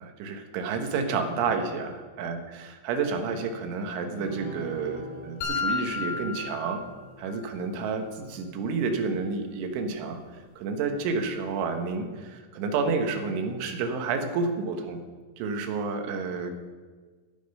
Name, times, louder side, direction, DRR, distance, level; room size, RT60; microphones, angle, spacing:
voice 1, 0.0-6.8 7.2-10.2 10.6-15.0 15.4-16.5, right 4 dB, 75° right, 5 dB, 3.7 m, -30 dB
sound 1, 4.1-9.8, right 1 dB, 40° left, 6.4 m, -45 dB
sound 2, 5.4-7.4, left 5 dB, 70° left, 3.8 m, -32 dB
13.0 x 10.0 x 5.5 m, 1.4 s
omnidirectional pair, 5.7 m